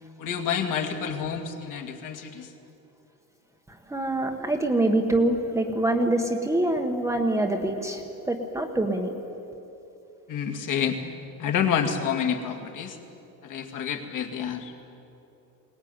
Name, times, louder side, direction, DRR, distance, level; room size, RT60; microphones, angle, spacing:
voice 1, 0.2-2.5 10.3-11.1 11.4-13.0 13.4-14.7, left 7 dB, 55° left, 4 dB, 2.4 m, -28 dB
voice 2, 3.9-8.0 8.3-9.2, right 1 dB, 10° right, 3 dB, 1.0 m, -25 dB
22.0 x 19.0 x 9.5 m, 3.0 s
cardioid pair, 175°, 38 cm